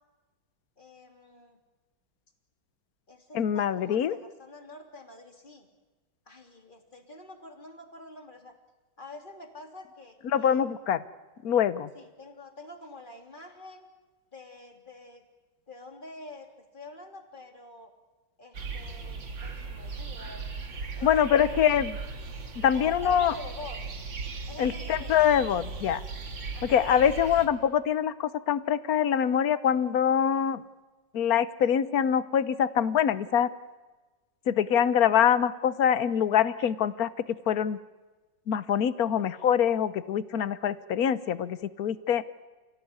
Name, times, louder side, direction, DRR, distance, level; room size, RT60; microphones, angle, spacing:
voice 1, 0.8-1.6 3.1-5.7 6.3-8.5 9.0-10.7 11.9-13.9 14.3-15.3 15.7-17.9 18.4-20.5 21.0-21.9 22.7-23.8 24.5-25.4 26.5-26.8 27.4-27.5, left 2 dB, 25° left, 4 dB, 3.4 m, -47 dB
voice 2, 3.3-4.1 10.2-11.0 11.4-11.9 21.0-21.9 22.6-23.3 24.6-26.0 26.6-30.6 31.1-33.5 34.5-37.1 37.5-37.8 38.5-42.2, left 9 dB, 60° left, 15 dB, 1.4 m, -24 dB
sound 1, 18.5-27.5, right 4 dB, 85° right, 3.1 m, -38 dB
30.0 x 17.0 x 9.7 m, 1.2 s
omnidirectional pair, 2.0 m